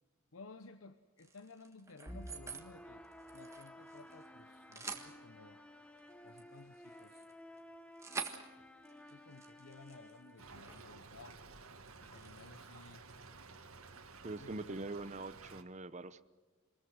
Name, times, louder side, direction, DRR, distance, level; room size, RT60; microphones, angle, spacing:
voice 1, 0.3-3.0 3.3-5.6 6.2-7.2 9.1-11.4 12.0-13.1 14.4-14.7, left 3 dB, 75° left, 10 dB, 0.9 m, -56 dB
sound 1, 1.2-2.7 3.0-4.3 4.5-5.1 6.0-11.0 11.3-11.5 11.9-13.4, right 4 dB, 15° right, 1.6 m, -49 dB
sound 2, 2.0-11.0, equal, 5° left, 1.0 m, -54 dB
Stream / Trickle dribble, 10.4-15.6, right 4 dB, 80° right, 1.8 m, -54 dB
voice 2, 14.2-16.2, right 2 dB, 35° right, 13 dB, 0.8 m, -43 dB
26.5 x 20.5 x 6.4 m, 1.4 s
head